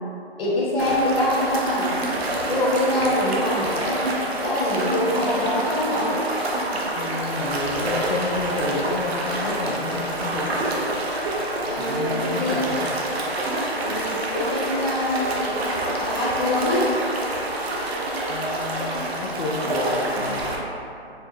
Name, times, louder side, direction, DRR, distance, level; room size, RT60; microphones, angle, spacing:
voice 1, 0.4-2.0 2.5-4.0 4.4-6.2 11.6-12.6 13.8-15.3 15.9-16.9, left 1 dB, 60° left, -7 dB, 1.3 m, -24 dB
sound 1, 0.8-20.6, right 1 dB, 70° right, 0.7 m, -27 dB
voice 2, 7.0-10.6 11.7-12.9 18.3-20.4, left 3 dB, 80° left, -4 dB, 0.6 m, -30 dB
4.6 x 2.1 x 2.8 m, 2.5 s
hypercardioid pair, 155°, 32 cm